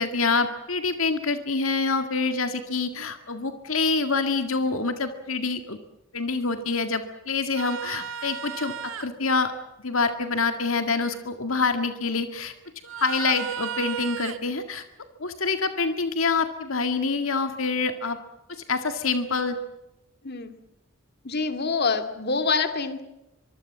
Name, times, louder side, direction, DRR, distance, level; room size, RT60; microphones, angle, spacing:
voice 1, 0.0-5.8 6.1-9.5 9.8-12.5 13.0-14.9 15.2-18.2 18.5-19.6, left 4 dB, 75° left, 8 dB, 1.9 m, -26 dB
sound 1, 7.6-9.1 12.8-14.4 17.3-17.4, right 8 dB, 70° right, 1.8 m, -34 dB
voice 2, 21.2-23.0, left 4 dB, 50° left, 8 dB, 2.4 m, -26 dB
25.0 x 23.5 x 7.4 m, 0.92 s
head